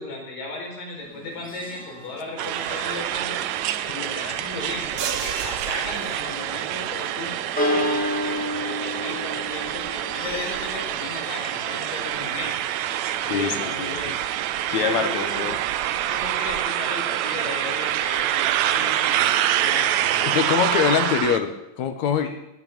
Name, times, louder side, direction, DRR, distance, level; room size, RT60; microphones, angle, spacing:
voice 1, 0.0-3.4 3.9-7.3 7.7-14.2 14.7-15.5 16.1-19.3 19.6-20.2 22.2-22.3, left 2 dB, 85° left, -2 dB, 6.7 m, -35 dB
Church bell, 1.0-16.1, left 1 dB, 5° left, 2.7 m, -34 dB
sound 1, 2.4-21.4, right 12 dB, 75° right, 1.8 m, -26 dB
sound 2, 5.0-6.8, right 7 dB, 60° right, 1.5 m, -33 dB
voice 2, 13.3-13.9 14.7-15.6 20.2-22.3, left 7 dB, 65° left, 8 dB, 2.5 m, -24 dB
20.5 x 10.0 x 6.1 m, 0.90 s
omnidirectional pair, 3.8 m